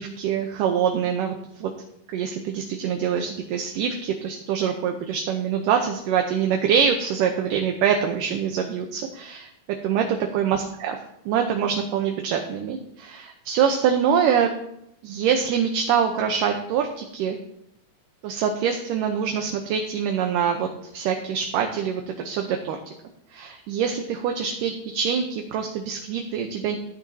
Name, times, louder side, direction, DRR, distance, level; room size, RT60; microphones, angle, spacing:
voice 1, 0.0-1.7 2.1-9.5 9.8-11.0 11.3-14.5 15.0-17.4 18.2-20.7 20.9-22.8 23.3-26.8, right 7 dB, 75° right, 3 dB, 2.3 m, -24 dB
15.5 x 10.0 x 2.8 m, 0.77 s
omnidirectional pair, 4.2 m